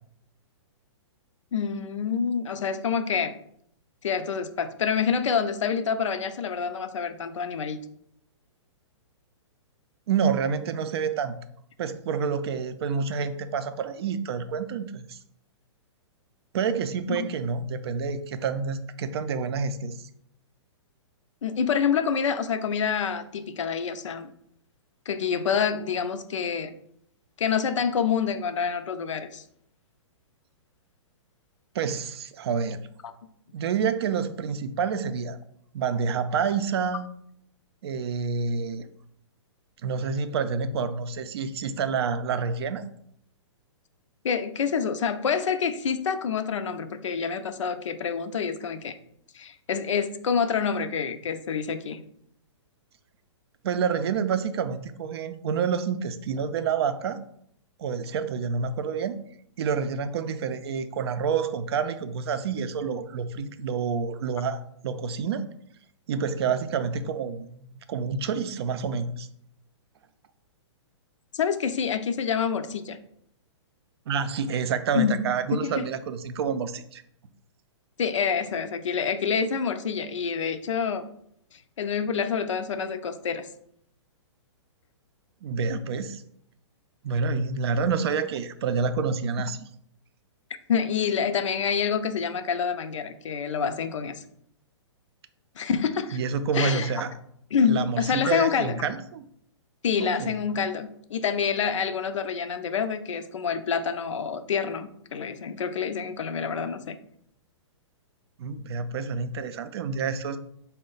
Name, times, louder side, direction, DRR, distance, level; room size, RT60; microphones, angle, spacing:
voice 1, 1.5-3.4 4.0-7.8 17.1-17.3 21.4-24.3 25.1-26.7 27.4-29.4 44.2-49.0 49.3-52.0 71.3-73.0 74.9-75.9 78.0-81.0 81.5-83.5 90.7-94.2 95.6-96.2 96.5-96.9 97.5-98.8 99.8-107.0, left 6 dB, 90° left, 0.4 m, -27 dB
voice 2, 10.1-11.4 11.8-15.2 16.5-20.0 31.7-32.9 33.5-35.4 35.7-37.1 37.8-38.9 39.8-42.8 53.6-57.2 57.8-59.2 59.6-65.5 66.1-69.3 74.1-77.0 85.4-86.2 87.0-89.6 96.1-97.1 97.7-99.2 100.0-100.3 108.4-110.4, right 6 dB, 60° right, 0.4 m, -28 dB
4.2 x 2.1 x 3.8 m
hypercardioid pair, 145°, 15 cm